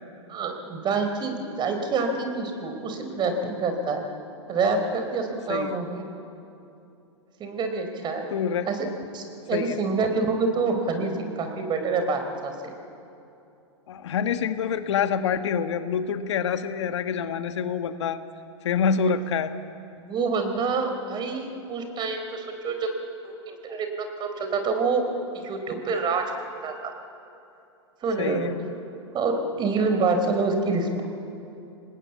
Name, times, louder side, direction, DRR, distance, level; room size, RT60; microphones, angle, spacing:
voice 1, 0.3-4.0 4.5-6.0 7.4-8.2 8.7-8.8 9.1-12.7 20.0-22.9 23.2-25.0 25.4-26.3 26.6-26.9 28.0-28.5 29.1-31.0, right 4 dB, 30° right, 6 dB, 4.1 m, -27 dB
voice 2, 8.3-8.7 9.5-9.8 13.9-18.2 18.6-19.5 28.2-28.5, left 7 dB, 70° left, 9 dB, 1.5 m, -26 dB
26.5 x 19.5 x 8.5 m, 2.8 s
hypercardioid pair, 105°, 15 cm